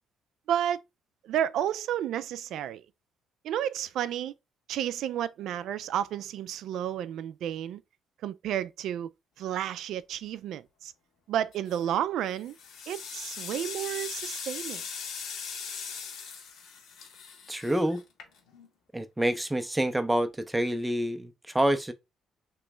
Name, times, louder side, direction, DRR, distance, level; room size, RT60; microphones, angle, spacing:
voice 1, 0.5-0.8 1.2-2.8 3.4-4.3 4.7-7.8 8.2-9.1 9.4-10.9 11.3-12.6 12.9-14.8, right 10 dB, 70° right, 0.3 m, -31 dB
sound 1, 11.5-11.9 12.4-18.7, left 6 dB, 75° left, 1.3 m, -40 dB
voice 2, 17.5-18.0 18.9-21.9, right 1 dB, 5° right, 0.5 m, -27 dB
3.1 x 3.0 x 3.3 m
cardioid pair, 125°, 0 cm